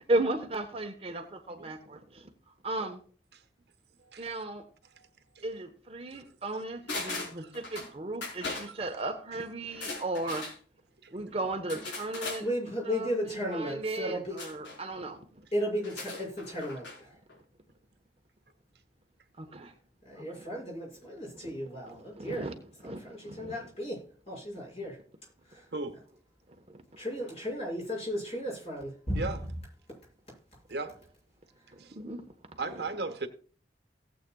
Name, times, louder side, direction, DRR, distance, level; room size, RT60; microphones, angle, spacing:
voice 1, 0.0-3.0 4.2-4.7 5.4-10.5 11.1-12.5 12.8-15.5 19.4-19.7 20.2-20.6 21.0-21.6 21.8-23.7 26.5-26.8 31.7-32.8, right 2 dB, 35° right, 1.2 m, -36 dB
voice 2, 4.0-4.4 5.0-5.1 5.3-5.4 6.1-6.2 7.4-7.5 8.7-8.8 11.0-11.1 25.7-26.0 29.1-29.4 30.7-31.0 31.8-31.9 32.6-33.3, right 3 dB, 65° right, 1.4 m, -37 dB
sound 1, 6.9-7.9 8.2-8.7 9.7-10.6 11.7-12.4 14.4-14.8 15.8-17.0 17.3-17.4, left 3 dB, 85° left, 4.5 m, -38 dB
voice 3, 12.4-14.4 15.5-17.2 20.0-22.5 22.8-25.0 25.5-25.6 27.0-29.4, equal, 35° left, 6.2 m, -35 dB
17.5 x 8.4 x 2.3 m
head